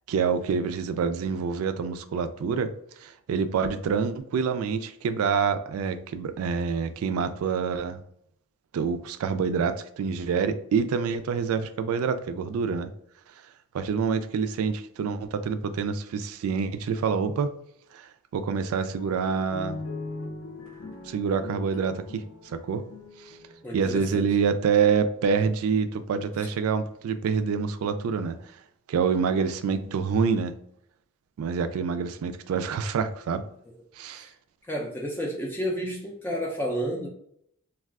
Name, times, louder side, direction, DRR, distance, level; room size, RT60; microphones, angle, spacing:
voice 1, 0.1-2.7 3.0-8.0 8.7-12.9 13.7-17.5 17.9-19.8 21.1-22.8 23.7-28.4 28.9-30.5 31.4-33.4 34.0-34.3, right 6 dB, 90° right, 0.3 m, -27 dB
sound 1, 19.0-24.6, left 2 dB, 60° left, 0.5 m, -41 dB
voice 2, 23.6-24.3 26.4-26.5 34.1-34.3 34.6-37.1, equal, 10° left, 0.3 m, -31 dB
2.3 x 2.2 x 3.4 m
head